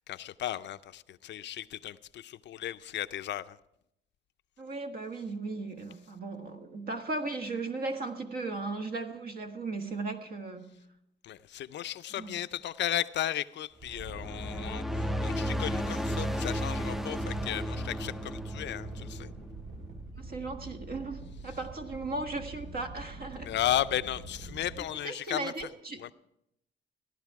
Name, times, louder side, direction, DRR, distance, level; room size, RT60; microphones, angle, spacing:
voice 1, 0.1-3.6 11.2-19.3 23.4-25.5 26.0-26.1, left 12 dB, 65° left, 0.5 m, -35 dB
voice 2, 4.6-10.7 12.2-12.4 20.2-23.5 25.0-26.1, right 3 dB, 50° right, 1.5 m, -37 dB
sound 1, 13.8-20.5, equal, ahead, 0.5 m, -34 dB
sound 2, 13.8-24.8, right 2 dB, 75° right, 2.1 m, -45 dB
15.5 x 11.5 x 4.7 m
cardioid pair, 90°, 20 cm